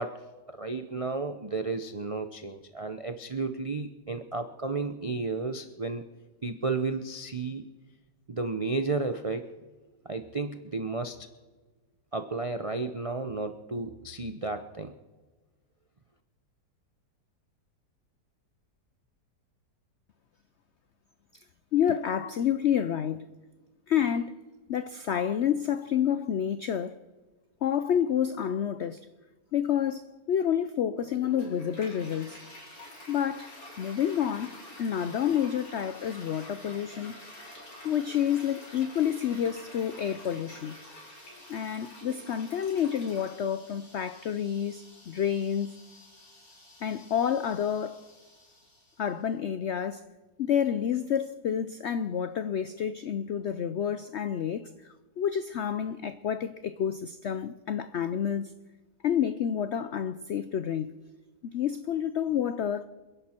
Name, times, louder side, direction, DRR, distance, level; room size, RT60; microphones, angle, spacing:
voice 1, 0.0-6.0 6.4-7.6 8.3-9.5 10.0-11.3 12.1-14.9, right 3 dB, 65° right, 0.3 m, -33 dB
voice 2, 21.7-23.2 23.9-24.3 24.7-27.0 27.6-29.0 29.5-32.4 33.1-37.2 37.8-40.8 41.5-45.8 46.8-48.0 49.0-50.1 50.4-58.5 59.0-60.9 61.5-62.9, left 9 dB, 75° left, 0.6 m, -29 dB
Toilet flush, 31.2-49.1, left 1 dB, 55° left, 4.3 m, -49 dB
28.5 x 11.0 x 4.4 m
omnidirectional pair, 1.8 m